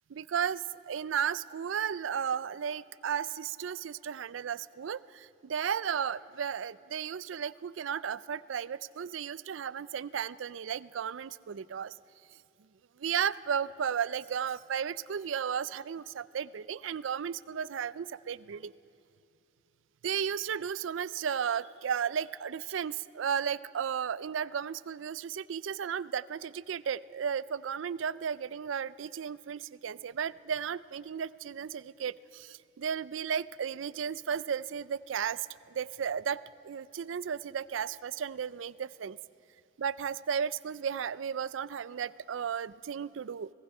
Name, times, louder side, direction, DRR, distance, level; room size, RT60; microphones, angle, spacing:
voice 1, 0.1-11.9 13.0-18.7 20.0-39.2 39.8-43.5, right 7 dB, 80° right, 19 dB, 0.4 m, -34 dB
30.0 x 18.5 x 5.5 m, 2.6 s
head